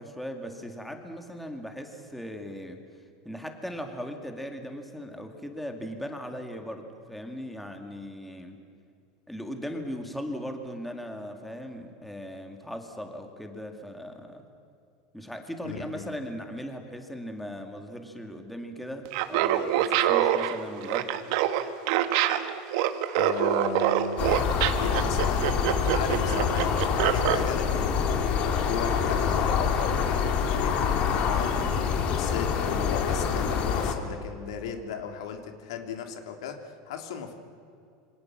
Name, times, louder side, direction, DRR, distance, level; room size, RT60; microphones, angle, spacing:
voice 1, 0.0-2.8 3.2-8.6 9.3-14.4 15.1-21.1, equal, ahead, 4 dB, 2.1 m, -38 dB
voice 2, 15.6-16.1 23.2-24.4 24.7-28.1 28.6-31.8 32.1-37.3, left 7 dB, 85° left, 5 dB, 3.2 m, -36 dB
Laughter, 19.0-27.4, right 12 dB, 60° right, 1.7 m, -25 dB
sound 1, 24.2-33.9, left 6 dB, 40° left, 2.7 m, -26 dB
27.5 x 26.0 x 7.5 m, 2.5 s
supercardioid pair, 160°, 3 cm